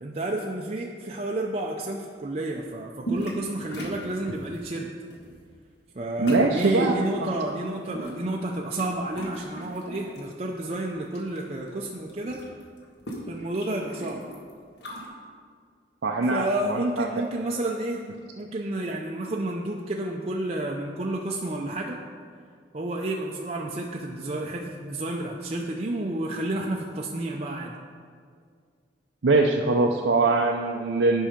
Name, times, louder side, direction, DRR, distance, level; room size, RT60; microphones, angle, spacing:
voice 1, 0.0-4.9 5.9-12.4 13.3-14.2 16.3-18.0 18.4-22.0 22.7-27.7, right 1 dB, 35° right, -1 dB, 0.5 m, -30 dB
sound 1, 3.0-3.5 3.7-4.6 5.1-5.3 6.3-6.8 7.7-8.9 9.1-10.2 10.7-11.4 11.7-11.8 12.0-15.1, right 1 dB, 65° left, 1.5 m, -37 dB
voice 2, 6.2-6.9 7.2-7.3 16.0-17.1 29.2-31.3, right 3 dB, 90° right, 0 dB, 0.6 m, -22 dB
10.5 x 5.5 x 5.0 m, 2.1 s
head